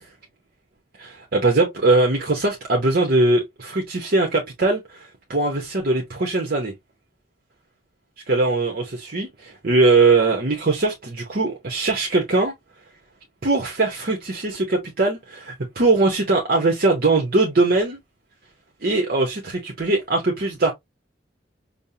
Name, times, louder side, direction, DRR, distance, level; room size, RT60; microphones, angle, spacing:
voice 1, 1.0-6.7 8.3-12.5 13.4-18.0 18.8-20.7, right 3 dB, 50° right, 0.8 m, -21 dB
5.2 x 2.0 x 2.7 m
head